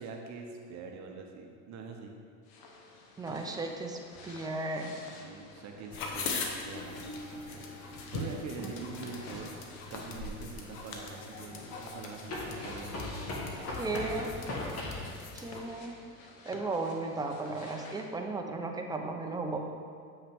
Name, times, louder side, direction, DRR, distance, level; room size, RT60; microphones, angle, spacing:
voice 1, 0.0-2.1 5.2-7.7 7.9-9.5 9.9-14.2, right 4 dB, 45° right, 2 dB, 0.9 m, -44 dB
sound 1, 2.4-18.1, left 3 dB, 60° left, 1.1 m, -51 dB
voice 2, 3.2-5.0 8.6-8.7 13.8-14.4 15.3-16.0 16.4-19.6, right 3 dB, 10° right, 2 dB, 0.6 m, -35 dB
sound 2, 5.9-15.6, left 3 dB, 80° left, 1.1 m, -41 dB
sound 3, 9.8-9.9 12.3-15.1, left 2 dB, 35° left, 1.5 m, -38 dB
7.5 x 5.5 x 3.5 m, 2.2 s
supercardioid pair, 110°, 40 cm